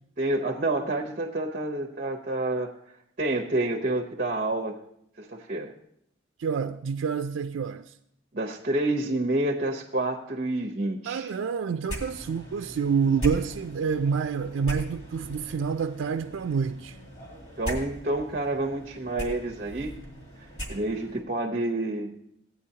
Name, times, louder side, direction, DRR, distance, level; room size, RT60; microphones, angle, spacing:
voice 1, 0.2-2.7 3.2-4.8 5.2-5.7 8.3-11.3 17.6-19.9 20.7-22.2, right 2 dB, 45° right, 0.7 m, -28 dB
voice 2, 6.4-7.8 11.1-16.9, right 6 dB, 85° right, 0.4 m, -28 dB
sound 1, 11.9-21.2, right 1 dB, 35° left, 2.3 m, -39 dB
16.0 x 9.2 x 2.8 m
head